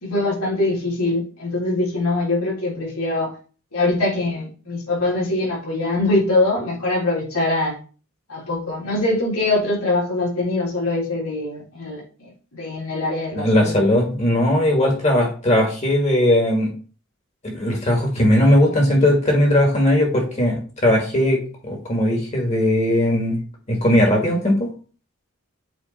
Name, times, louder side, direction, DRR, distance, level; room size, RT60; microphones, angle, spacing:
voice 1, 0.0-3.3 3.7-7.8 8.3-12.0 12.5-13.7, left 2 dB, 85° left, -5 dB, 3.5 m, -23 dB
voice 2, 13.3-16.7 17.4-23.4 23.7-24.7, left 1 dB, 30° left, 1 dB, 1.6 m, -18 dB
8.0 x 3.2 x 4.1 m, 0.38 s
head